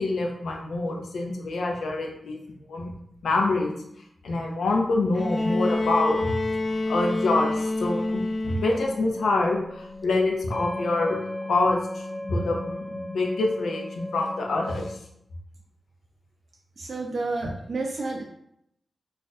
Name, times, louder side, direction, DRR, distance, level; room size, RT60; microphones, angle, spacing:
voice 1, 0.0-2.4 2.7-2.9 3.2-3.7 4.2-6.3 6.9-11.2 11.5-11.8 12.3-14.9, left 2 dB, 90° left, 1 dB, 0.6 m, -26 dB
Bowed string instrument, 5.1-9.2 10.4-10.5, left 2 dB, 35° left, 0.3 m, -27 dB
sound 1, 8.6-15.0, left 1 dB, 10° left, 0.7 m, -36 dB
voice 2, 16.8-18.2, right 3 dB, 55° right, 0 dB, 0.3 m, -30 dB
2.5 x 2.4 x 4.0 m, 0.74 s
wide cardioid pair, 90°, 0 cm